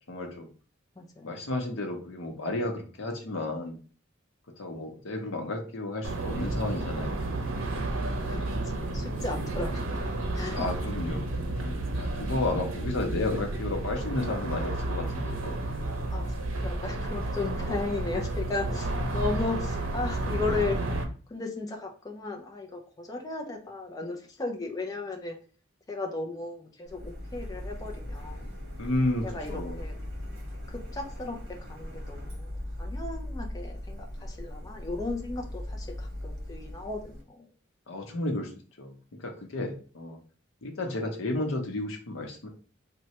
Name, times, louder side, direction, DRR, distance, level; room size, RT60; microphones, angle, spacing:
voice 1, 0.1-0.5 1.2-3.8 4.6-7.3 10.4-11.3 11.6-15.6 28.8-29.8 37.9-38.5 38.8-40.2 40.6-42.5, left 2 dB, 80° left, 3 dB, 0.7 m, -32 dB
voice 2, 1.0-1.5 8.3-10.0 10.3-10.6 16.1-16.4 16.6-20.8 21.3-25.4 25.9-28.5 29.2-29.9 30.7-32.5 32.8-37.5, left 3 dB, 20° left, 1 dB, 0.4 m, -35 dB
sound 1, 6.0-21.0, right 2 dB, 90° right, 0.6 m, -31 dB
Printer, 26.8-37.2, left 1 dB, 55° right, 1.0 m, -39 dB
3.1 x 2.1 x 2.8 m, 0.38 s
head